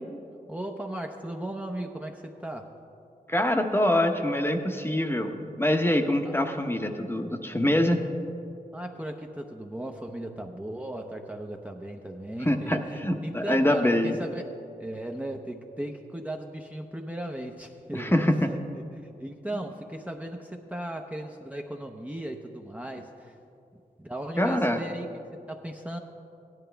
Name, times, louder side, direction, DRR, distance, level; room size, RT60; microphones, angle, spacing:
voice 1, 0.5-2.7 6.2-6.3 8.7-14.5 14.8-18.6 18.9-23.4 24.0-25.1 25.5-26.0, right 1 dB, 10° right, 2 dB, 0.8 m, -37 dB
voice 2, 3.3-8.1 12.5-14.2 17.9-18.5 24.4-24.8, left 1 dB, 15° left, 5 dB, 1.0 m, -25 dB
16.5 x 11.0 x 3.4 m, 2.6 s
cardioid pair, 55°, 15 cm